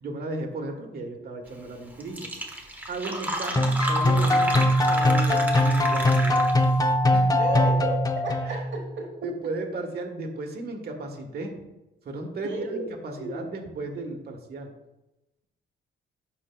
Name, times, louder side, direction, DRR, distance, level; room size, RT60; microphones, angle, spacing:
voice 1, 0.0-2.3 2.9-6.4 7.1-7.4 8.4-8.7 9.2-11.5 12.0-14.7, right 2 dB, 50° right, 3 dB, 1.3 m, -35 dB
Fill (with liquid), 1.7-1.8 2.0-6.8, right 1 dB, 10° right, 1.1 m, -32 dB
sound 1, 3.6-8.7, left 1 dB, 20° left, 0.6 m, -21 dB
voice 2, 7.4-8.6 12.4-12.9 13.2-13.4, right 3 dB, 70° right, -1 dB, 1.1 m, -32 dB
11.5 x 4.5 x 2.3 m, 0.97 s
cardioid pair, 90°, 20 cm